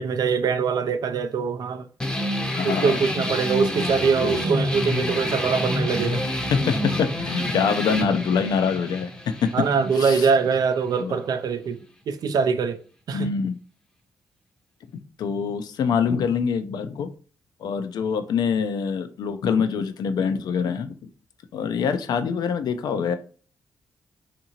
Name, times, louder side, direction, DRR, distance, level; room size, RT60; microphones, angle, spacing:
voice 1, 0.0-1.9 2.6-6.2 9.5-11.8 12.1-12.8 13.1-13.3, right 5 dB, 65° right, 0.3 m, -23 dB
sound 1, 2.0-11.0, left 1 dB, 10° left, 0.6 m, -28 dB
voice 2, 2.6-3.0 4.2-4.3 6.5-9.5 9.9-10.3 11.0-11.2 13.1-13.6 15.2-17.1 17.6-20.9 21.5-23.2, left 6 dB, 75° left, 0.3 m, -25 dB
2.7 x 2.5 x 2.8 m
cardioid pair, 65°, 7 cm